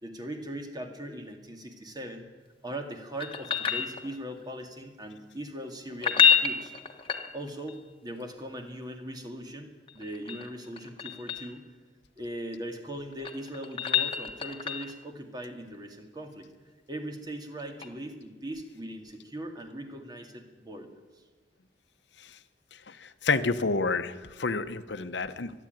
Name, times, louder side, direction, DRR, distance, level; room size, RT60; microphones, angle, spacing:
voice 1, 0.0-2.3 2.6-6.7 7.3-11.7 12.2-16.5 16.9-20.9 21.2-21.3, right 1 dB, 25° right, 5 dB, 2.2 m, -40 dB
sound 1, 3.2-4.4 5.9-7.7 9.9-11.5 12.9-15.0 17.8-17.9, left 7 dB, 30° left, 1.3 m, -28 dB
voice 2, 22.9-25.5, left 4 dB, 85° left, 11 dB, 0.9 m, -29 dB
25.5 x 11.0 x 9.2 m, 1.3 s
head